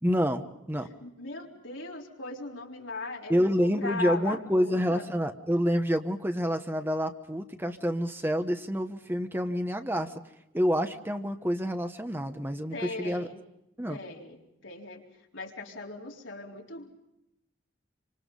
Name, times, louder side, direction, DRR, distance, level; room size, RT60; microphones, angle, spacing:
voice 1, 0.0-0.9 3.3-10.1 10.5-13.3 13.8-14.0, equal, 10° right, 7 dB, 1.1 m, -28 dB
voice 2, 0.8-5.1 12.7-13.5 13.9-16.9, left 3 dB, 85° left, -1 dB, 4.0 m, -39 dB
28.0 x 25.5 x 5.4 m, 0.86 s
head